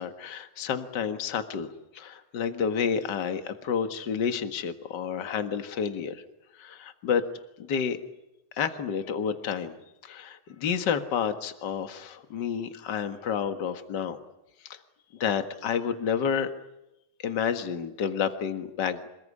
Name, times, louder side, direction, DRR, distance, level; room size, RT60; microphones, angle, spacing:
voice 1, 0.0-6.2 6.6-7.3 7.6-8.0 8.5-9.8 10.0-14.2 14.6-14.8 15.1-16.5 17.2-19.1, left 7 dB, 40° left, 7 dB, 1.9 m, -30 dB
28.0 x 20.0 x 9.9 m, 0.93 s
omnidirectional pair, 3.4 m